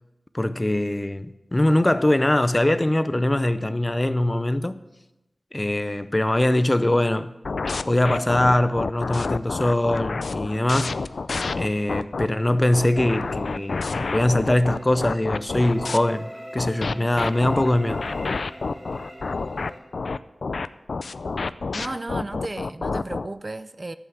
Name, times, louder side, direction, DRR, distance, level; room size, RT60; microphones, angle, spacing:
voice 1, 0.3-4.8 5.5-7.3 7.9-11.0 11.5-18.0, left 1 dB, 25° left, 0.6 m, -22 dB
sound 1, 7.4-12.3 12.7-16.0 16.6-23.3, left 4 dB, 75° left, 0.4 m, -29 dB
sound 2, 12.9-19.8, equal, 20° right, 5.6 m, -42 dB
voice 2, 21.7-23.9, right 2 dB, 35° right, 0.4 m, -34 dB
11.0 x 8.0 x 7.3 m
wide cardioid pair, 70°, 0 cm